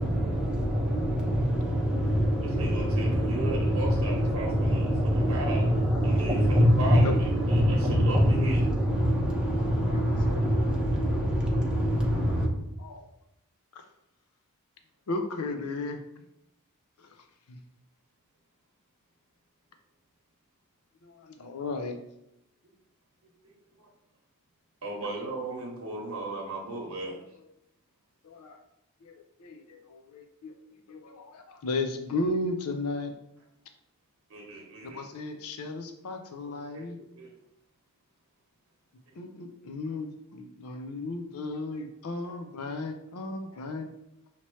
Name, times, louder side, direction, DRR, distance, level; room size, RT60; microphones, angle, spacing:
voice 1, 0.0-12.5, equal, 5° right, 0.7 m, -25 dB
voice 2, 2.4-5.6 6.0-8.6 23.8-23.9 24.8-27.2 34.3-35.0 36.7-36.9 37.2-37.3, right 2 dB, 70° right, 1.0 m, -36 dB
voice 3, 3.7-4.1 5.2-6.4 7.0-7.1 8.8-9.0 9.8-10.8 11.1-11.9 12.8-13.1 13.7-13.8 15.1-16.2 17.0-17.6 21.0-22.0 27.2-27.4 28.2-28.6 29.0-30.6 30.9-33.1 34.8-37.0 39.1-43.9, left 2 dB, 75° left, 0.5 m, -36 dB
5.7 x 2.9 x 3.1 m
head